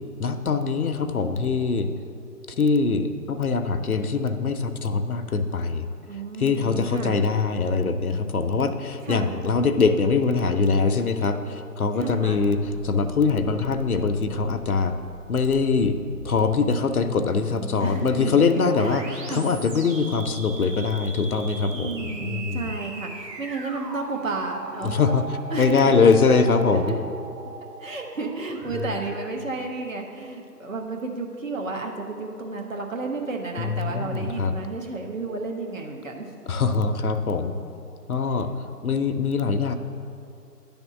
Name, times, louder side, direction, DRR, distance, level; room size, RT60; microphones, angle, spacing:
voice 1, 0.2-1.9 2.5-5.9 6.1-15.0 15.3-16.0 16.2-22.7 24.8-27.0 33.6-34.6 36.5-37.6 38.1-38.5 38.8-39.7, left 4 dB, 65° left, 8 dB, 0.7 m, -23 dB
voice 2, 6.0-7.2 9.1-9.3 12.0-12.4 17.8-18.3 18.8-19.5 21.7-24.9 25.5-26.1 26.7-27.0 27.8-36.3, right 3 dB, 55° right, 1 dB, 1.2 m, -32 dB
sound 1, 12.3-29.4, right 2 dB, 85° right, 1.4 m, -39 dB
10.5 x 3.6 x 7.1 m, 2.6 s
figure-of-eight pair, 170°, 48 cm